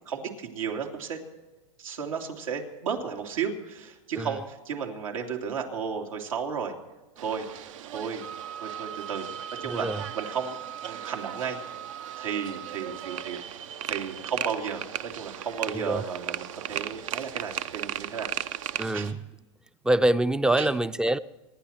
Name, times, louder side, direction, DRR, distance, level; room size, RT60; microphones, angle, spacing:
voice 1, 0.1-1.2 1.8-6.7 7.2-7.5 7.8-8.2 8.6-9.3 9.6-11.6 12.2-18.3 18.9-19.1 20.6-20.7, right 6 dB, 90° right, 2.8 m, -33 dB
sound 1, 7.2-19.1, right 11 dB, 75° right, 0.7 m, -37 dB
Wind instrument woodwind instrument, 8.2-13.4, right 10 dB, 55° right, 1.1 m, -41 dB
voice 2, 9.6-10.0 15.7-16.0 18.8-19.2 19.8-21.2, right 1 dB, 5° right, 0.4 m, -25 dB
26.0 x 10.5 x 4.4 m
supercardioid pair, 130°, 17 cm